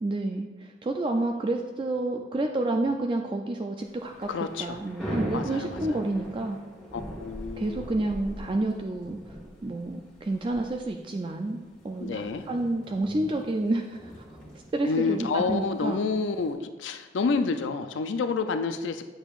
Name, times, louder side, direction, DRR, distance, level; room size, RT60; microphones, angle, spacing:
voice 1, 0.0-4.3 4.6-6.6 7.6-9.2 9.6-11.6 11.8-14.0 14.7-16.0, right 2 dB, 25° right, 3 dB, 0.3 m, -29 dB
Thunder / Rain, 3.9-16.5, equal, 5° left, 1.7 m, -41 dB
voice 2, 4.3-4.8 5.3-5.8 6.9-7.9 12.0-12.5 14.9-19.0, left 4 dB, 90° left, 9 dB, 0.4 m, -29 dB
8.7 x 7.0 x 2.4 m, 1.2 s
head